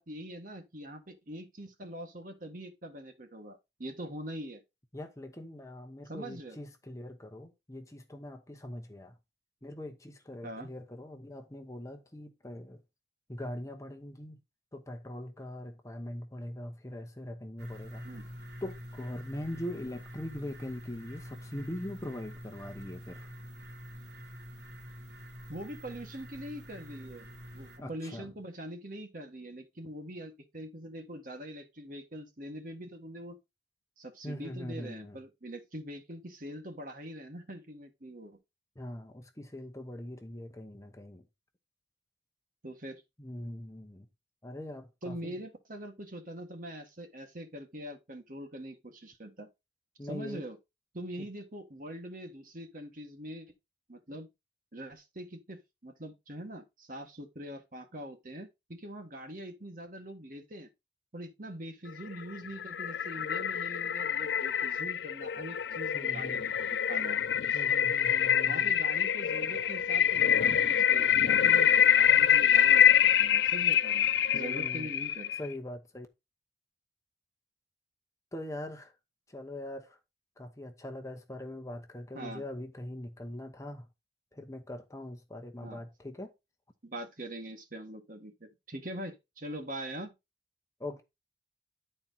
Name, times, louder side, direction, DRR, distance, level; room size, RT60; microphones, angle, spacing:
voice 1, 0.0-4.6 6.1-6.6 10.4-10.7 18.0-18.3 25.5-27.3 27.5-33.4 34.0-38.4 42.6-43.0 45.0-49.5 50.0-50.6 50.9-53.5 53.9-54.3 54.7-60.7 61.1-67.2 67.5-67.6 68.5-75.3 82.1-82.4 85.6-85.8 86.8-90.1, right 1 dB, 50° right, 1.5 m, -43 dB
voice 2, 4.9-9.1 9.6-12.8 13.3-14.4 14.7-18.1 18.6-23.3 27.8-28.3 34.2-35.2 38.8-41.2 43.2-44.1 44.4-45.4 50.0-50.5 51.2-51.3 65.9-66.4 67.5-68.7 74.3-74.9 75.4-76.1 78.3-78.9 79.3-80.0 80.4-83.9 84.3-86.3 90.8-91.0, left 1 dB, 15° left, 1.0 m, -42 dB
sound 1, 17.6-27.8, equal, 70° right, 2.6 m, -46 dB
sound 2, 62.1-75.5, left 9 dB, 70° left, 0.4 m, -25 dB
10.5 x 4.4 x 4.0 m
head